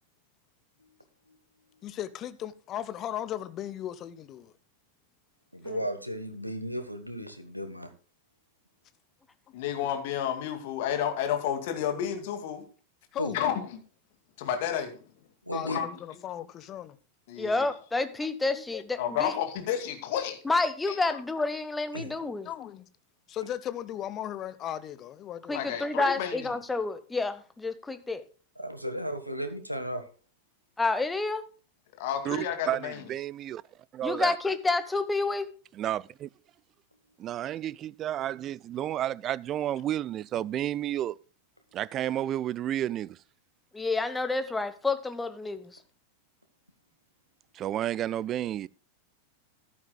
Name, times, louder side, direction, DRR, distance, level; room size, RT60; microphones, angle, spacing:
voice 1, 1.8-4.5 13.1-13.5 15.5-17.0 18.5-18.8 22.4-22.9 23.3-25.6, left 11 dB, 30° left, 0.9 m, -37 dB
voice 2, 5.5-7.9 13.2-13.3 15.5-15.8 21.9-22.1 28.6-30.0, equal, 90° right, 1.5 m, -34 dB
voice 3, 9.5-12.6 13.3-13.8 14.4-15.0 15.6-15.9 17.3-17.7 19.0-20.4 20.9-21.0 25.5-26.5 32.0-33.0, left 9 dB, 50° left, 2.3 m, -31 dB
voice 4, 17.4-19.3 20.4-22.5 25.5-28.2 30.8-31.5 34.0-35.5 43.7-45.8, left 3 dB, 10° left, 1.1 m, -29 dB
voice 5, 32.2-33.6 33.9-34.3 35.8-36.3 37.2-41.2 41.7-43.2 47.5-48.7, right 12 dB, 30° right, 0.4 m, -31 dB
14.0 x 11.0 x 2.3 m
figure-of-eight pair, 90°, 0 cm